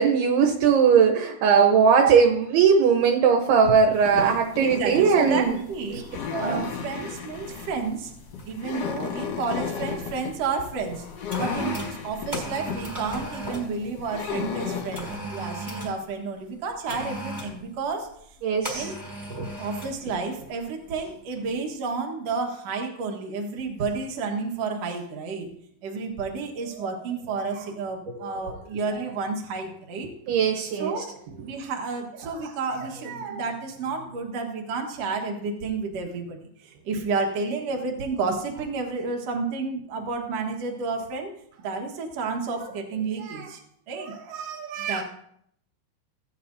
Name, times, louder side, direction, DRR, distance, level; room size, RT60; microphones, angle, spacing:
voice 1, 0.0-5.5 6.3-6.6 18.4-18.9 30.3-30.9, right 6 dB, 75° right, 2 dB, 2.8 m, -19 dB
sound 1, 3.9-15.2, left 7 dB, 55° left, 1.9 m, -34 dB
voice 2, 4.6-8.1 8.5-11.1 11.4-18.1 18.7-19.0 19.3-25.6 25.8-30.2 30.6-41.3 41.6-43.6 43.9-45.0, right 4 dB, 60° right, 2 dB, 1.8 m, -31 dB
sound 2, 7.6-7.7 8.4-8.7 8.9-10.1 10.8-13.7 14.9-16.0 16.9-17.6 18.6-20.0 20.3-20.5, right 1 dB, 10° right, 2.2 m, -36 dB
16.0 x 9.7 x 2.7 m, 0.69 s
omnidirectional pair, 4.9 m